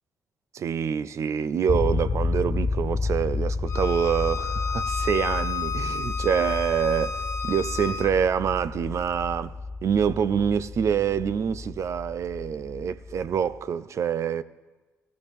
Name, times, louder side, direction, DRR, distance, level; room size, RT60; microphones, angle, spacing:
voice 1, 0.5-14.4, right 7 dB, 65° right, 0.5 m, -26 dB
sound 1, 1.7-13.6, left 3 dB, 35° left, 0.6 m, -31 dB
Bowed string instrument, 3.7-8.1, left 5 dB, 65° left, 1.0 m, -32 dB
16.0 x 13.5 x 3.5 m
cardioid pair, 80°, 6 cm